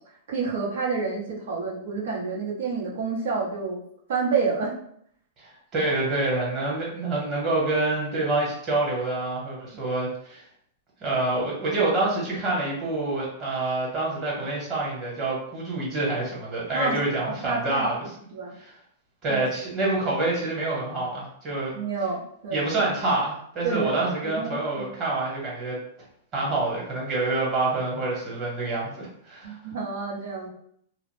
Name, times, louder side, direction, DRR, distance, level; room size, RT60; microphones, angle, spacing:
voice 1, 0.3-3.8 4.1-4.7 16.7-18.5 19.3-19.4 21.7-22.7 23.6-24.9 29.4-30.5, right 4 dB, 80° right, -4 dB, 0.9 m, -29 dB
voice 2, 5.4-10.4 11.0-18.1 18.6-18.7 19.2-21.7 22.5-25.8 26.3-29.6, right 2 dB, 35° right, -4 dB, 1.2 m, -27 dB
2.3 x 2.0 x 3.2 m, 0.68 s
hypercardioid pair, 135°, 0 cm